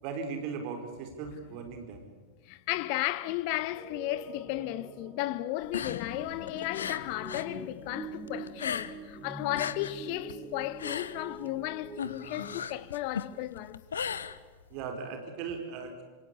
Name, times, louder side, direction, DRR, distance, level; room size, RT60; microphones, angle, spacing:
voice 1, 0.0-2.1 14.7-16.0, right 5 dB, 45° right, 4.5 m, -38 dB
voice 2, 2.5-13.8, left 15 dB, 45° left, 1.2 m, -34 dB
sound 1, 3.8-12.7, right 3 dB, 15° right, 3.3 m, -45 dB
sound 2, 5.6-7.5 7.8-9.2 9.4-14.9, left 7 dB, 70° left, 1.2 m, -37 dB
26.5 x 26.0 x 8.4 m
figure-of-eight pair, 90°, 0 cm